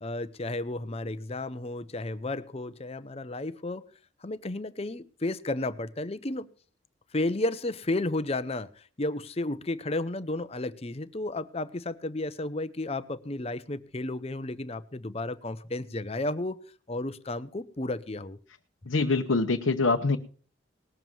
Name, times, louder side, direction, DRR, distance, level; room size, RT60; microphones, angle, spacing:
voice 1, 0.0-3.8 4.2-6.5 7.1-16.6 16.9-18.4, left 2 dB, 30° left, 0.7 m, -33 dB
voice 2, 18.9-20.2, left 3 dB, 85° left, 0.9 m, -24 dB
19.0 x 7.4 x 6.1 m
head